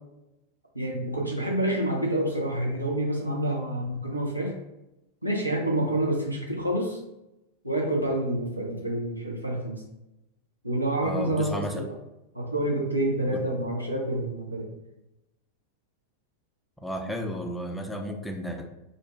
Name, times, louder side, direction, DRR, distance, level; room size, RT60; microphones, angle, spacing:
voice 1, 0.7-4.5 5.2-7.0 7.6-9.8 10.6-11.9 12.3-14.7, right 1 dB, 85° right, -1 dB, 0.6 m, -28 dB
voice 2, 11.0-11.8 13.3-13.4 16.8-18.7, equal, 5° left, 2 dB, 0.4 m, -33 dB
2.6 x 2.1 x 3.1 m, 0.91 s
figure-of-eight pair, 90°, 0 cm